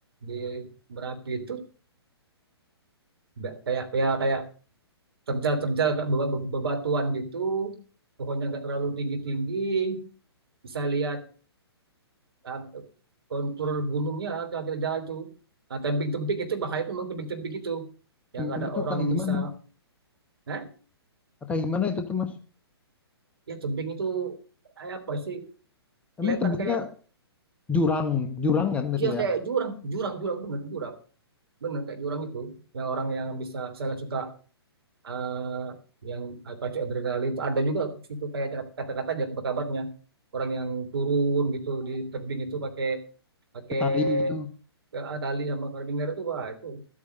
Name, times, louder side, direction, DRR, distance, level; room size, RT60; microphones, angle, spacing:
voice 1, 0.2-1.6 3.4-4.4 5.3-7.8 8.2-10.0 10.6-11.2 12.4-12.8 13.3-15.3 15.7-17.9 18.3-19.5 20.5-20.7 23.5-24.4 24.8-25.5 26.2-26.8 28.9-31.0 31.6-34.3 35.0-35.8 36.0-39.9 40.3-43.0 43.5-44.4 44.9-46.8, right 3 dB, 60° right, 5 dB, 3.3 m, -29 dB
voice 2, 18.4-19.5 21.5-22.4 26.2-26.9 27.7-29.3 43.8-44.5, left 5 dB, 10° left, 6 dB, 1.0 m, -27 dB
13.0 x 8.6 x 6.5 m, 0.38 s
figure-of-eight pair, 120°, 14 cm